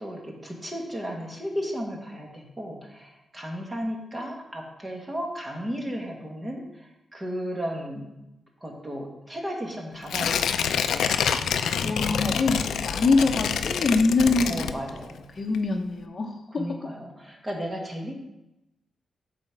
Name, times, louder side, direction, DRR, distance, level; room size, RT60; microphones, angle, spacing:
voice 1, 0.0-8.1 8.6-10.7 14.4-15.3 16.6-18.1, equal, 20° right, 0 dB, 1.8 m, -34 dB
Tearing, 10.1-15.2 15.5-15.6, left 7 dB, 85° left, 0.4 m, -27 dB
voice 2, 11.8-14.7 15.4-16.8, left 3 dB, 40° left, 3 dB, 0.8 m, -24 dB
8.8 x 4.2 x 6.1 m, 0.91 s
cardioid pair, 95°, 0 cm